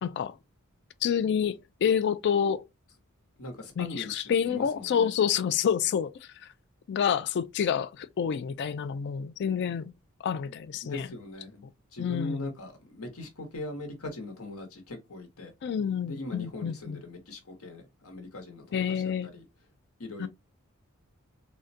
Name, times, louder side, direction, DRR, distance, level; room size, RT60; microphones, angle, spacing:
voice 1, 0.0-0.4 1.0-2.6 3.8-6.5 6.9-9.9 10.2-11.1 12.0-12.5 15.6-17.0 18.7-19.3 20.2-20.3, left 7 dB, 50° left, 0.3 m, -28 dB
voice 2, 3.4-5.1 10.8-15.5 16.0-19.4 20.0-20.3, left 2 dB, 75° left, 1.1 m, -40 dB
3.7 x 2.1 x 2.6 m
head